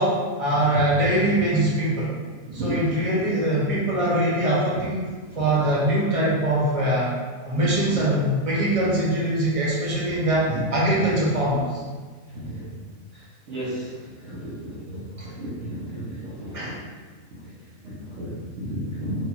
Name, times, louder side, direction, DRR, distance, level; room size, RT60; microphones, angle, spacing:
voice 1, 0.0-2.1 2.5-5.1 5.3-7.1 7.4-11.8 16.5-16.7, right 1 dB, 25° right, -6 dB, 1.3 m, -22 dB
voice 2, 0.7-1.1 2.5-2.8 5.3-5.4 7.6-7.7 12.3-12.7 13.1-16.7 17.3-17.4 17.8-19.3, right 1 dB, 55° right, -9 dB, 1.1 m, -33 dB
4.5 x 2.6 x 4.3 m, 1.4 s
omnidirectional pair, 1.6 m